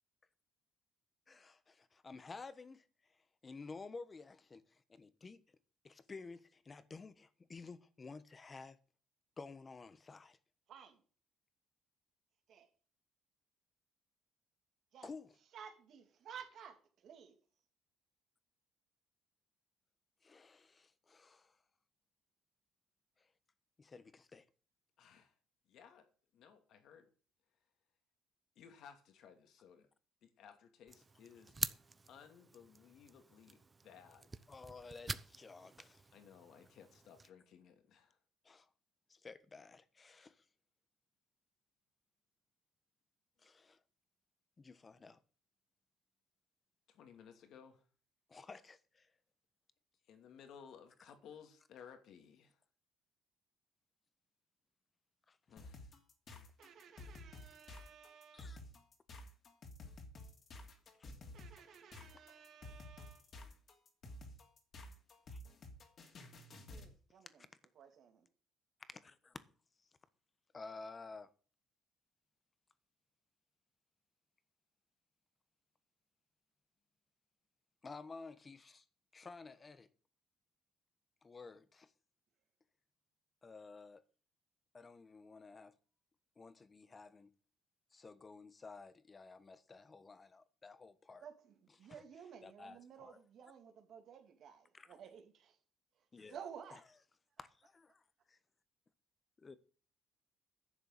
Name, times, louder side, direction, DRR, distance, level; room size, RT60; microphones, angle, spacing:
voice 1, 1.3-3.2 3.4-5.4 5.8-8.8 9.4-10.4 15.0-15.3 20.2-21.6 23.2-23.3 23.8-24.5 34.5-36.1 38.4-38.7 39.1-40.4 43.4-43.8 44.6-45.2 48.3-49.1 55.3-55.4 58.3-58.6 61.0-61.1 65.3-65.4 68.9-69.4 70.5-71.3 77.8-78.8 79.1-79.9 81.2-81.9 83.4-84.0 84.7-85.7 86.4-87.3 87.9-91.2 92.4-93.2 94.7-94.9 96.1-96.4 96.7-96.8 97.4-98.0 98.3-98.4 99.4-99.6, left 4 dB, 30° left, 1.2 m, -53 dB
voice 2, 10.7-11.0 12.5-12.7 14.9-15.1 15.5-17.4 56.6-58.6 61.3-63.3 66.7-67.5 67.7-68.3 91.2-95.6 96.0-96.8, right 8 dB, 60° right, 2.7 m, -54 dB
voice 3, 25.0-25.3 25.7-26.1 26.3-27.1 28.6-29.9 30.2-31.6 32.1-34.4 36.1-38.2 46.9-47.8 50.1-52.6 55.5-55.9, left 7 dB, 65° left, 2.6 m, -59 dB
sound 1, 30.9-37.3, right 4 dB, 25° right, 0.7 m, -47 dB
sound 2, 55.6-66.9, left 2 dB, 45° left, 3.0 m, -52 dB
11.0 x 6.7 x 8.2 m
cardioid pair, 100°, 0 cm